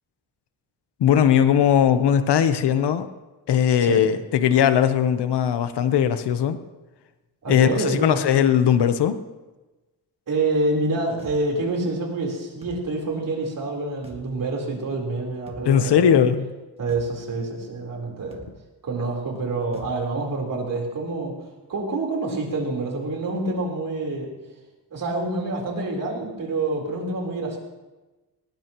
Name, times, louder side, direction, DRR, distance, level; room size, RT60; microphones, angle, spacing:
voice 1, 1.0-3.1 3.5-6.6 7.5-9.2 15.6-16.5, left 9 dB, 90° left, 10 dB, 1.1 m, -19 dB
voice 2, 7.4-8.2 10.3-16.2 16.8-18.4 18.8-21.3 21.7-24.3 24.9-27.6, right 2 dB, 55° right, 0 dB, 4.2 m, -27 dB
sound 1, 11.2-11.4 12.6-12.8 14.0-14.2 15.5-15.7 16.9-17.1 18.3-18.5 19.7-19.9, right 2 dB, 15° right, 1.8 m, -43 dB
19.5 x 19.5 x 3.1 m, 1.1 s
wide cardioid pair, 145°, 39 cm